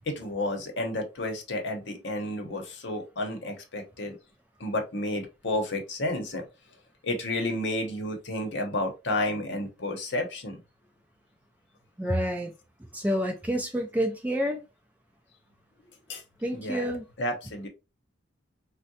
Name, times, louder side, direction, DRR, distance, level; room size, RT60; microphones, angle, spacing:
voice 1, 0.1-4.2 4.6-6.5 7.0-10.6 16.1-16.2 16.5-16.9 17.2-17.7, left 1 dB, 60° left, 0.8 m, -31 dB
voice 2, 12.0-12.5 12.9-14.6 16.4-17.0, equal, 10° right, 0.3 m, -28 dB
3.6 x 2.1 x 2.7 m
head